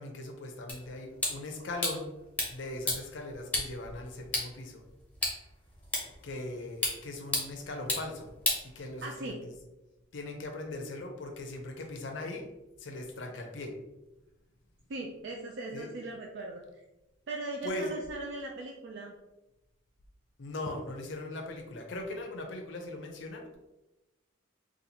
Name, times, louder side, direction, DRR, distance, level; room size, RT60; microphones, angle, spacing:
voice 1, 0.0-2.1 2.5-4.8 6.2-8.3 8.6-9.6 10.1-12.5 12.8-13.7 15.7-15.9 17.6-18.0 20.4-23.6, left 2 dB, 70° left, 2 dB, 0.6 m, -39 dB
sound 1, 0.7-9.3, left 2 dB, 5° left, 0.7 m, -36 dB
voice 2, 9.0-9.4 14.9-16.6 17.3-19.1, right 2 dB, 65° right, 0 dB, 0.4 m, -39 dB
4.0 x 2.4 x 2.8 m, 0.99 s
head